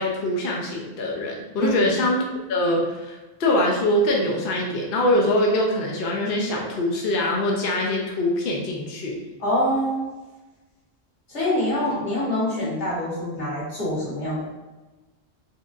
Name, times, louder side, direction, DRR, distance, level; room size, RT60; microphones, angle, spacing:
voice 1, 0.0-2.2 2.5-9.2, left 1 dB, 60° left, -1 dB, 0.8 m, -23 dB
voice 2, 1.6-1.9 9.4-10.1 11.3-14.4, left 1 dB, 90° left, -8 dB, 1.7 m, -25 dB
4.4 x 2.6 x 2.4 m, 1.1 s
omnidirectional pair, 1.1 m